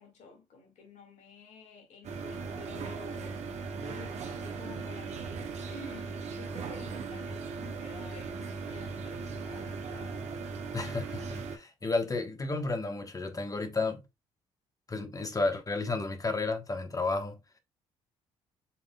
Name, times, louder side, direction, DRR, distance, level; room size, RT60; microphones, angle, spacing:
voice 1, 0.0-3.4 3.8-10.2, left 4 dB, 60° left, 2.1 m, -50 dB
sound 1, 2.0-11.6, right 4 dB, 55° right, 1.0 m, -38 dB
voice 2, 10.7-14.0 14.9-17.4, left 3 dB, 25° left, 1.2 m, -32 dB
5.7 x 3.6 x 2.3 m
hypercardioid pair, 55°, 14 cm